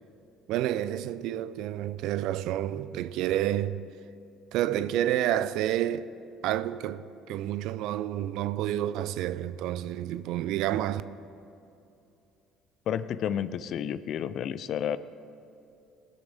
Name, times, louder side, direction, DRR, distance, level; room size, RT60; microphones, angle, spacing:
voice 1, 0.5-3.8 4.5-6.1 6.4-11.0, right 12 dB, 70° right, 0.3 m, -29 dB
voice 2, 12.9-15.0, left 9 dB, 60° left, 0.4 m, -31 dB
16.5 x 6.4 x 3.4 m
hypercardioid pair, 65°, 0 cm